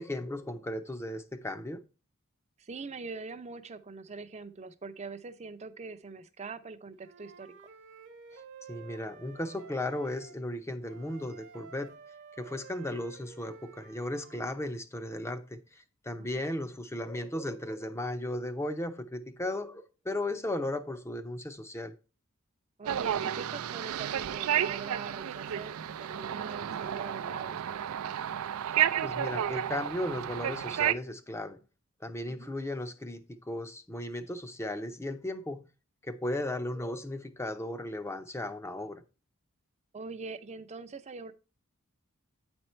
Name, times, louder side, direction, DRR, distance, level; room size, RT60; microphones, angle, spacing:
voice 1, 0.0-1.8 8.3-8.4 8.7-12.0 12.4-21.9 29.0-31.6 32.0-35.7 36.0-39.0, left 1 dB, 15° left, 0.6 m, -36 dB
voice 2, 2.6-7.5 16.2-16.5 22.8-27.8 32.3-32.5 39.9-41.3, right 4 dB, 30° right, 0.6 m, -43 dB
Wind instrument woodwind instrument, 7.0-10.4 10.9-14.6, right 5 dB, 55° right, 0.9 m, -51 dB
sound 1, 22.9-30.9, right 10 dB, 75° right, 0.4 m, -31 dB
8.8 x 4.4 x 4.3 m
head